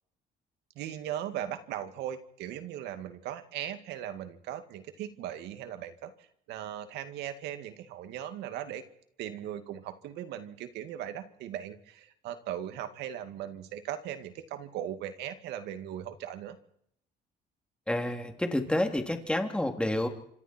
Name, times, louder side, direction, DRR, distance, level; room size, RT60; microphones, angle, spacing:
voice 1, 0.8-8.8 9.2-16.6, right 11 dB, 85° right, 9 dB, 2.3 m, -38 dB
voice 2, 17.9-20.1, left 1 dB, 5° left, 5 dB, 3.1 m, -29 dB
27.0 x 25.5 x 4.5 m, 0.70 s
cardioid pair, 110°, 17 cm